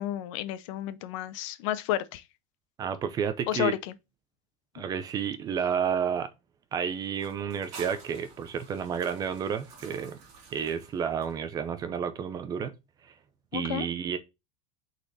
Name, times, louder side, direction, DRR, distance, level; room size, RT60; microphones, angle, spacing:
voice 1, 0.0-2.2 3.5-3.9 4.8-4.9 13.5-13.9, left 12 dB, 60° left, 0.7 m, -31 dB
voice 2, 2.8-3.7 4.7-6.3 6.7-10.2 10.5-12.7 13.0-13.1 13.5-14.2, right 7 dB, 20° right, 0.5 m, -31 dB
sound 1, 7.1-11.7, right 4 dB, 40° right, 2.3 m, -50 dB
5.8 x 4.2 x 4.0 m
supercardioid pair, 170°, 19 cm